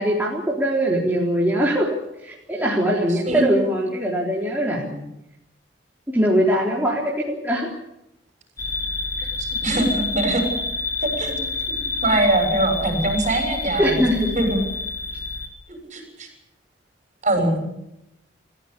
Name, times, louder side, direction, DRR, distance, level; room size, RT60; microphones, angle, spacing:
voice 1, 0.0-1.9 2.2-5.1 6.1-7.7 13.8-14.4 17.4-17.7, equal, 10° right, -4 dB, 3.9 m, -22 dB
sound 1, 8.6-15.5, left 3 dB, 15° left, 4.1 m, -28 dB
voice 2, 9.2-10.5 11.0-11.3 11.7-13.9 14.4-14.6 15.7-16.3 17.2-17.6, right 1 dB, 40° right, 5 dB, 7.1 m, -23 dB
30.0 x 15.5 x 8.5 m, 0.85 s
head